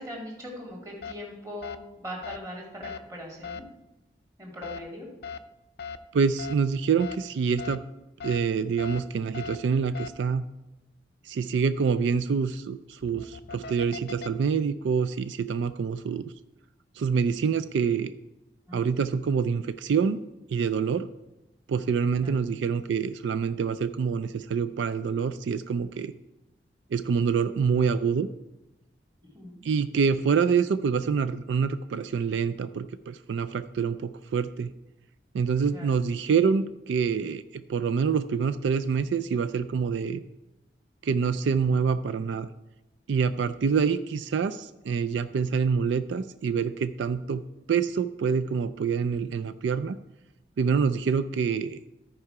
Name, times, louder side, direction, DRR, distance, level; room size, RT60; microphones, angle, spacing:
voice 1, 0.0-3.6 4.4-5.1 18.7-18.8 22.2-22.3 29.3-29.6 35.7-35.9, equal, 20° right, -2 dB, 2.1 m, -40 dB
sound 1, 1.0-1.1 1.6-1.8 2.2-2.4 2.8-3.0 3.4-3.6 4.6-4.8 5.2-5.4 5.8-6.0 6.4-6.5 7.0-7.1 7.6-7.8 8.2-8.4 8.8-9.0 9.3-9.5 9.9-10.1 12.9-14.3, left 6 dB, 60° left, 0.4 m, -38 dB
voice 2, 6.1-7.8 8.2-10.5 11.2-16.2 17.0-18.1 18.7-20.2 20.5-21.1 21.7-26.1 26.9-28.3 29.6-34.7 35.3-40.2 41.0-42.5 43.1-47.4 47.7-50.0 50.6-51.8, right 6 dB, 80° right, 12 dB, 0.3 m, -26 dB
13.5 x 4.8 x 4.8 m, 0.97 s
head